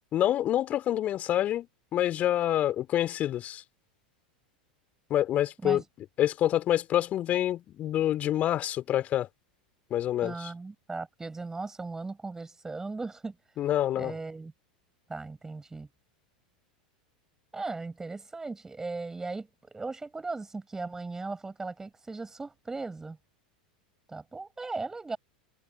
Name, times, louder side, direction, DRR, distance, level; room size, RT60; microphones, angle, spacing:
voice 1, 0.1-1.7 1.9-3.6 5.1-5.8 6.2-9.3 9.9-10.5 13.6-14.1, left 12 dB, 35° left, 3.5 m, -27 dB
voice 2, 10.2-13.3 14.0-14.5 15.1-15.9 17.5-23.2 24.1-25.2, right 3 dB, 10° right, 6.7 m, -37 dB
figure-of-eight pair, 85°, 4 cm